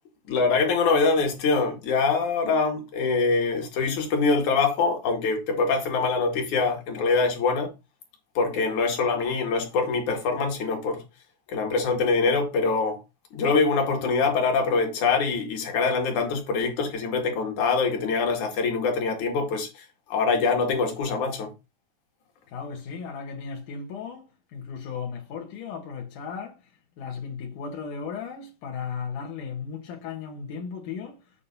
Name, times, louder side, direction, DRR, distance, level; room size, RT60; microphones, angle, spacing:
voice 1, 0.3-7.7 8.3-11.0 11.5-13.0 13.3-21.5, left 4 dB, 70° left, 3.4 m, -24 dB
voice 2, 22.5-26.6 27.0-31.2, left 6 dB, 90° left, 3.0 m, -36 dB
8.6 x 4.2 x 5.4 m
omnidirectional pair, 3.5 m